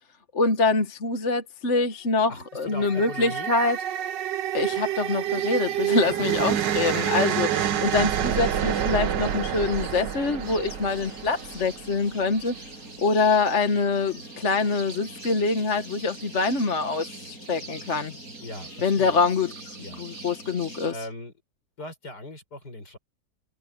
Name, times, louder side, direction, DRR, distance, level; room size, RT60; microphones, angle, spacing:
voice 1, 0.3-3.8 4.5-12.5 13.0-18.2 18.8-19.5 20.0-20.9, left 4 dB, 45° left, 1.7 m, -25 dB
voice 2, 2.3-3.5 18.4-19.2 19.8-20.4 20.9-21.3 21.8-23.0, left 1 dB, 70° left, 6.7 m, -39 dB
sound 1, 2.7-12.0, right 10 dB, 90° right, 1.7 m, -28 dB
sound 2, 5.3-20.9, right 2 dB, 55° right, 7.3 m, -43 dB
omnidirectional pair, 1.8 m